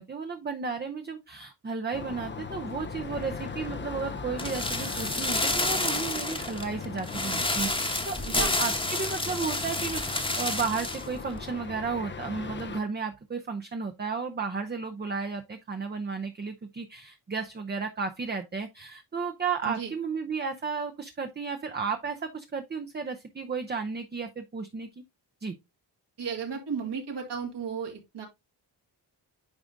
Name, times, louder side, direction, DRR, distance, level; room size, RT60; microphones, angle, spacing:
voice 1, 0.0-24.9 25.4-25.6, right 5 dB, 25° right, 0.5 m, -33 dB
sound 1, 1.9-12.8, left 5 dB, 30° left, 0.5 m, -39 dB
sound 2, 4.4-11.1 11.3-11.4, left 2 dB, 15° left, 1.0 m, -29 dB
voice 2, 8.2-8.6 19.6-19.9 26.2-28.3, right 6 dB, 75° right, 1.9 m, -34 dB
8.8 x 4.8 x 2.5 m
wide cardioid pair, 120°, 42 cm